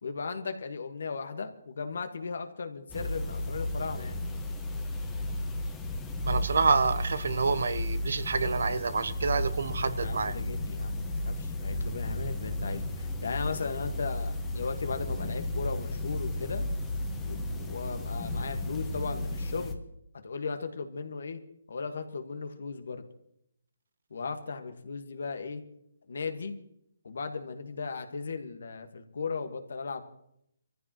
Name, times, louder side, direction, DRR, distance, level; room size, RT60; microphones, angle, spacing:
voice 1, 0.0-4.2 10.0-16.6 17.3-19.8 20.2-21.4 21.7-23.0 24.1-25.6 26.1-26.5 27.0-30.1, left 4 dB, 70° left, 7 dB, 1.6 m, -36 dB
sound 1, 2.9-19.7, left 1 dB, 10° left, 1.4 m, -33 dB
voice 2, 6.2-10.3, right 5 dB, 70° right, 14 dB, 0.9 m, -28 dB
24.0 x 14.5 x 3.1 m, 0.74 s
hypercardioid pair, 150°, 0 cm